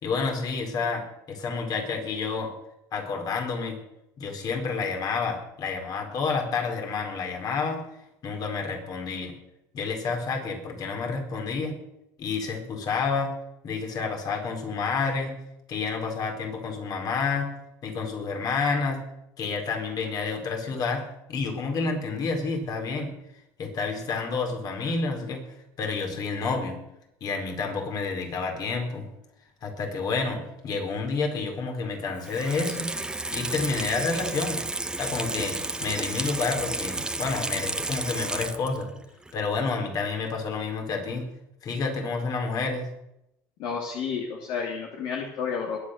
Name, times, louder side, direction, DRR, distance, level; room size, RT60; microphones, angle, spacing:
voice 1, 0.0-2.5 2.9-3.8 4.2-7.8 8.2-9.3 9.7-11.8 12.2-13.3 13.6-15.4 15.7-17.6 17.8-19.0 19.4-23.1 23.6-25.4 25.8-26.8 27.2-29.1 29.6-32.9 33.3-34.6 35.0-38.9 39.3-41.3 41.6-42.9, left 4 dB, 50° left, 3 dB, 4.4 m, -29 dB
Water tap faucet / Sink (filling or washing), 32.2-38.9 39.3-39.4, right 2 dB, 10° right, 1.2 m, -32 dB
voice 2, 43.6-45.8, left 6 dB, 70° left, 0 dB, 2.9 m, -31 dB
21.0 x 9.1 x 6.7 m, 0.85 s
supercardioid pair, 90°, 8 cm